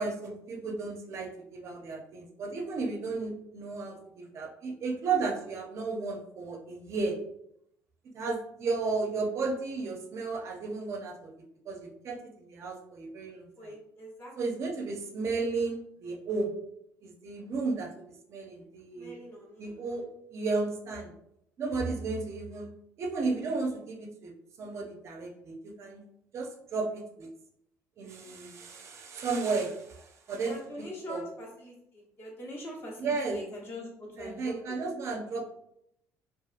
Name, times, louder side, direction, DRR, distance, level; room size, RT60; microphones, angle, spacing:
voice 1, 0.0-7.2 8.1-11.3 11.7-13.7 14.4-16.5 17.0-17.9 18.3-19.1 19.6-21.1 21.6-22.7 23.0-24.3 24.6-26.0 26.3-27.3 28.0-30.6 31.1-31.2 33.0-33.4 34.2-35.4, right 4 dB, 50° right, 2 dB, 0.5 m, -33 dB
voice 2, 13.6-14.3 19.0-19.7 30.4-34.8, left 1 dB, 40° left, -3 dB, 1.0 m, -43 dB
2.7 x 2.4 x 2.4 m, 0.76 s
cardioid pair, 105°, 6 cm